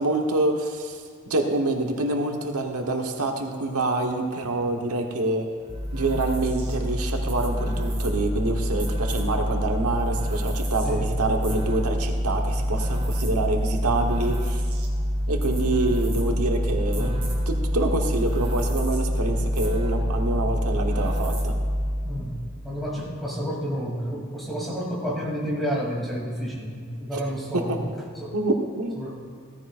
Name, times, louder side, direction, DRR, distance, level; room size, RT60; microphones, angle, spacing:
voice 1, 0.0-5.5 5.9-14.6 15.3-17.2 17.5-21.5 27.5-27.9 28.3-29.0, right 2 dB, 90° right, 3 dB, 1.2 m, -26 dB
sound 1, 5.7-22.3, equal, 25° right, 1.6 m, -26 dB
voice 2, 10.8-11.1 16.9-17.3 22.0-27.8 28.2-28.4 28.9-29.3, equal, ahead, -6 dB, 2.9 m, -30 dB
16.5 x 14.5 x 2.5 m, 2.2 s
head